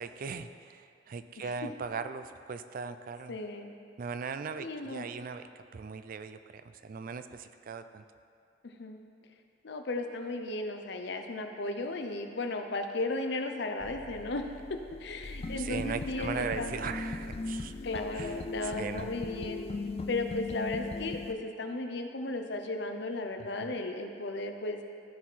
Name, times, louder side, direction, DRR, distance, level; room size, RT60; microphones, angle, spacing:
voice 1, 0.0-3.4 4.0-5.5 5.7-8.0 15.6-17.7 18.1-19.1 23.6-23.7, right 5 dB, 50° right, 10 dB, 0.4 m, -39 dB
voice 2, 3.3-3.7 4.6-5.1 8.6-9.0 9.6-16.8 17.8-19.6 20.1-24.8, left 2 dB, 65° left, 5 dB, 0.7 m, -35 dB
sound 1, 13.8-21.3, left 3 dB, 35° left, 0.4 m, -39 dB
14.0 x 4.7 x 4.2 m, 2.4 s
head